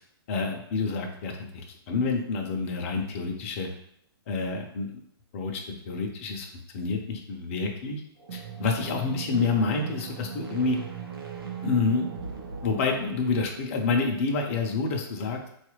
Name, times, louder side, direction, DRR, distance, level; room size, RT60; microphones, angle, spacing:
voice 1, 0.3-3.7 4.3-4.9 5.3-6.5 6.7-8.0 8.3-10.8 11.6-12.1 12.6-15.4, left 4 dB, 30° left, 1 dB, 0.5 m, -28 dB
sound 1, 8.2-13.8, right 7 dB, 65° right, 0.7 m, -39 dB
4.0 x 2.4 x 3.0 m, 0.70 s
hypercardioid pair, 165°, 13 cm